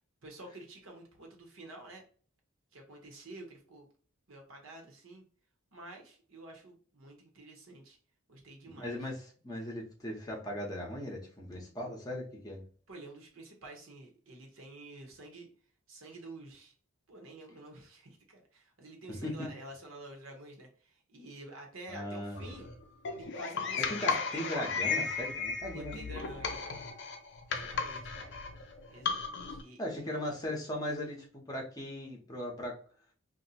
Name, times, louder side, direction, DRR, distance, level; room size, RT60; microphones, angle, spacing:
voice 1, 0.2-2.0 2.7-3.9 4.3-5.2 5.7-8.0 8.3-9.1 12.9-15.5 15.9-16.7 17.1-22.8 23.1-24.1 24.5-24.7 25.7-26.7 27.5-28.4 28.9-30.2, right 2 dB, 65° right, 2 dB, 0.9 m, -49 dB
voice 2, 8.7-12.6 19.2-19.5 21.9-22.5 23.9-25.9 29.8-32.7, left 1 dB, 15° left, -2 dB, 0.7 m, -38 dB
sound 1, 22.4-29.6, left 5 dB, 55° left, 0.5 m, -35 dB
2.6 x 2.1 x 4.0 m, 0.43 s
head